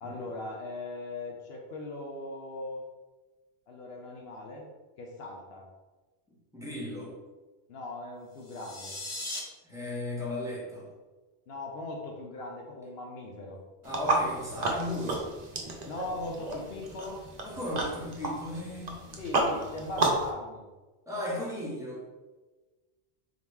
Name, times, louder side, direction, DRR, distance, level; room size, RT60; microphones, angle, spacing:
voice 1, 0.0-2.8 3.7-4.7 5.0-5.7 7.7-9.0 11.5-13.6 15.9-17.3 19.2-20.7, left 2 dB, 75° left, 0 dB, 0.9 m, -39 dB
voice 2, 6.5-7.1 9.6-10.9 13.8-15.3 17.4-18.9 21.1-22.0, left 1 dB, 5° right, -5 dB, 1.0 m, -35 dB
sound 1, 8.3-9.4, left 2 dB, 35° left, 0.7 m, -38 dB
sound 2, 13.8-20.3, right 2 dB, 45° right, 0.7 m, -32 dB
4.0 x 2.9 x 3.5 m, 1.2 s
omnidirectional pair, 1.1 m